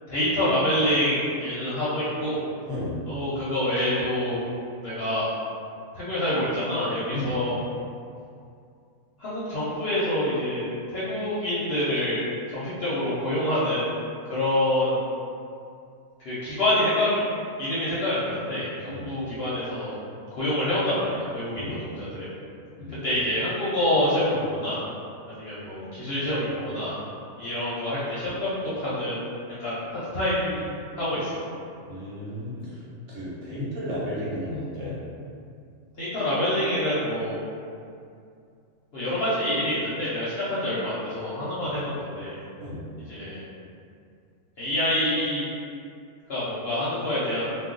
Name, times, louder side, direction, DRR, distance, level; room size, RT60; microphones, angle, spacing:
voice 1, 0.1-2.4 3.1-4.4 4.8-5.3 5.9-7.6 9.2-10.7 10.9-13.9 14.3-15.0 16.2-17.2 17.6-19.9 20.3-22.3 22.9-24.8 25.3-27.0 27.4-29.2 29.6-30.7 31.0-31.4 36.0-37.4 38.9-42.4 43.1-43.4 44.6-45.5 46.3-47.5, left 1 dB, 55° left, -10 dB, 0.7 m, -26 dB
voice 2, 31.9-32.8 33.1-35.0 42.6-42.8, left 1 dB, 55° right, -9 dB, 1.0 m, -33 dB
2.3 x 2.3 x 3.7 m, 2.4 s
omnidirectional pair, 1.6 m